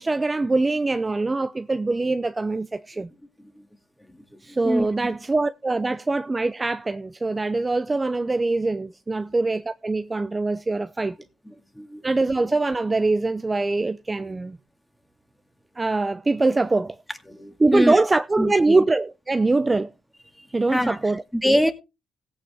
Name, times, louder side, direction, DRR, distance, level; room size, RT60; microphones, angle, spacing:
voice 1, 0.0-3.1 4.4-11.2 12.0-14.6 15.8-17.0 17.6-19.9 20.5-21.7, right 3 dB, 20° right, 0.6 m, -23 dB
voice 2, 4.5-4.9 11.5-12.0 17.3-18.0 18.4-18.8 20.4-21.0 21.3-21.7, equal, 5° left, 2.1 m, -25 dB
16.0 x 8.8 x 3.5 m
cardioid pair, 90°, 0 cm